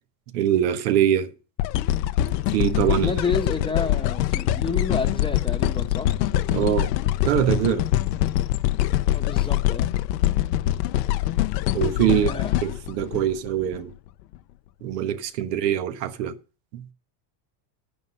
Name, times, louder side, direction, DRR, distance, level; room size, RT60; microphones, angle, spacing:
voice 1, 0.3-1.3 2.5-3.1 6.5-6.9 7.2-7.9 11.7-12.3 12.6-13.9 14.8-16.3 16.7-16.8, right 10 dB, 85° right, 1.4 m, -23 dB
sound 1, 1.6-13.8 14.3-14.4, left 14 dB, 90° left, 0.9 m, -24 dB
voice 2, 2.9-6.1 9.1-9.9 12.0-12.6, left 4 dB, 10° left, 0.9 m, -30 dB
10.0 x 8.9 x 5.5 m
supercardioid pair, 140°, 48 cm